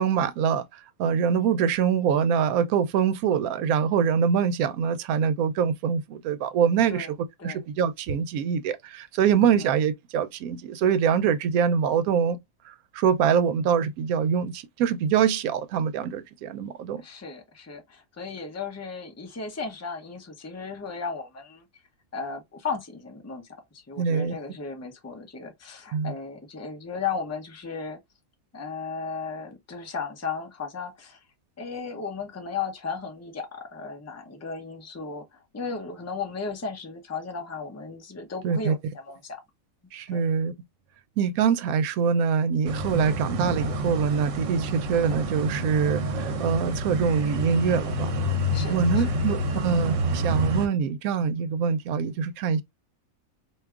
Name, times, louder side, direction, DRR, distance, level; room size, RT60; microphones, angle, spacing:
voice 1, 0.0-7.1 7.4-12.4 12.6-17.0 24.0-24.3 25.9-26.1 38.4-38.7 39.9-40.5 41.2-48.1 48.7-52.6, right 7 dB, 90° right, 1.0 m, -24 dB
voice 2, 17.0-21.6 22.1-23.5 23.7-28.0 28.5-31.2 31.6-39.4 40.1-40.2 48.5-49.0, left 5 dB, 20° left, 0.4 m, -35 dB
sound 1, 42.6-50.7, equal, 65° right, 1.0 m, -28 dB
4.6 x 2.6 x 2.3 m
omnidirectional pair, 1.5 m